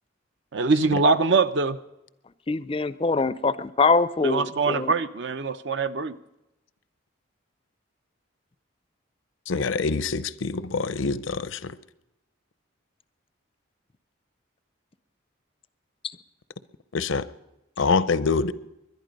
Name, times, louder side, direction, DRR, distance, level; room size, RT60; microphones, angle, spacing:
voice 1, 0.5-1.8 4.2-6.2, right 4 dB, 60° right, 12 dB, 0.6 m, -23 dB
voice 2, 2.5-4.9, left 4 dB, 25° left, 16 dB, 0.4 m, -23 dB
voice 3, 9.5-11.8 16.9-17.3 17.8-18.5, left 4 dB, 70° left, 15 dB, 0.6 m, -25 dB
21.5 x 11.5 x 5.3 m, 0.93 s
head